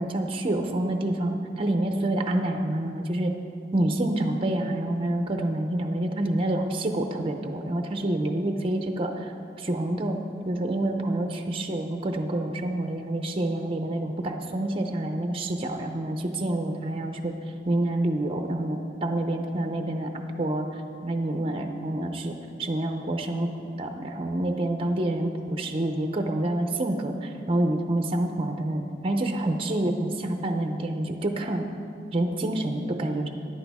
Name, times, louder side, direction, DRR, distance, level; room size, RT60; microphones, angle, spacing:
voice 1, 0.0-3.3 3.7-10.2 10.5-17.3 17.7-20.7 21.0-23.5 23.8-31.7 32.1-33.3, right 1 dB, 30° right, 5 dB, 0.6 m, -27 dB
13.0 x 10.5 x 3.6 m, 2.6 s
head